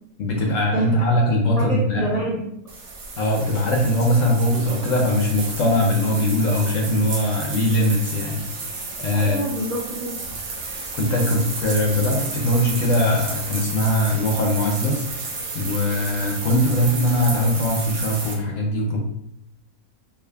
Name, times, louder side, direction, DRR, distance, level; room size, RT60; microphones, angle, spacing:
voice 1, 0.2-2.1 3.2-9.4 10.9-15.0 15.5-19.0, left 1 dB, 65° left, 0 dB, 0.8 m, -21 dB
voice 2, 1.6-2.5 9.1-10.2, right 2 dB, 65° right, -6 dB, 0.3 m, -27 dB
sound 1, 2.7-18.3, right 3 dB, 90° right, 1.4 m, -32 dB
5.0 x 2.3 x 2.2 m, 0.80 s
omnidirectional pair, 1.7 m